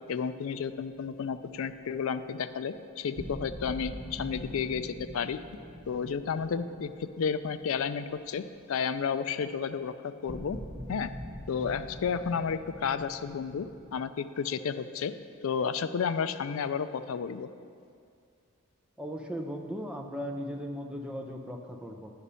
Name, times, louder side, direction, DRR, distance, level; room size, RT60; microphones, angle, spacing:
voice 1, 0.1-5.4 5.9-10.6 10.9-11.1 11.5-15.1 15.4-17.5, left 6 dB, 65° left, 11 dB, 0.3 m, -32 dB
sound 1, 3.2-8.2 8.5-8.7 10.3-14.0, equal, 30° right, 0.9 m, -44 dB
voice 2, 19.0-22.1, equal, 5° right, 2 dB, 0.5 m, -37 dB
9.8 x 5.0 x 5.5 m, 2.4 s
head